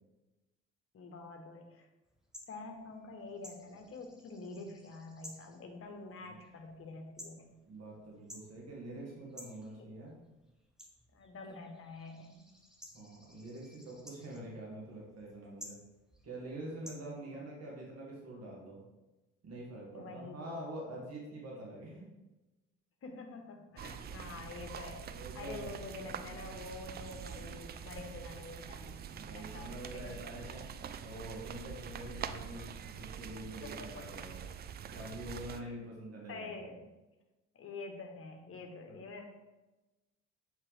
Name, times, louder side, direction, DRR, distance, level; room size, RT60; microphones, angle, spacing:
voice 1, 0.9-1.9 2.5-7.5 9.8-9.9 11.1-12.5 19.9-20.6 23.0-30.0 33.6-34.1 35.6-35.7 36.3-36.8 37.5-39.2, left 3 dB, 40° left, 4 dB, 1.2 m, -47 dB
sound 1, 2.0-17.0, equal, ahead, 1.1 m, -56 dB
voice 2, 7.7-10.1 12.9-15.8 16.2-18.8 19.4-22.1 23.7-24.0 24.9-25.7 29.1-30.6 31.0-34.5 34.9-36.5 38.9-39.0, right 1 dB, 45° right, -3 dB, 2.0 m, -46 dB
sound 2, 23.8-35.6, right 8 dB, 30° right, 0.4 m, -45 dB
7.3 x 4.7 x 3.3 m, 1.1 s
figure-of-eight pair, 45°, 36 cm